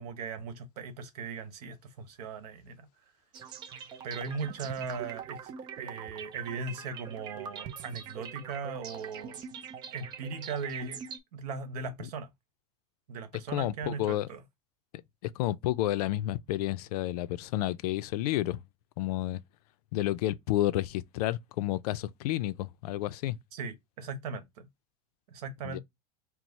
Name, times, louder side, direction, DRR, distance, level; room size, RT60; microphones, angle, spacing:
voice 1, 0.0-3.1 4.0-9.4 9.9-11.1 11.3-12.3 13.1-14.4 23.5-24.7 25.3-25.8, right 4 dB, 90° right, 1.1 m, -38 dB
sound 1, 3.3-11.2, right 7 dB, 20° right, 0.3 m, -43 dB
voice 2, 13.5-14.3 15.2-18.6 19.0-19.4 19.9-23.4 25.6-25.8, left 15 dB, 80° left, 0.4 m, -30 dB
4.6 x 2.0 x 3.9 m
supercardioid pair, 170°, 19 cm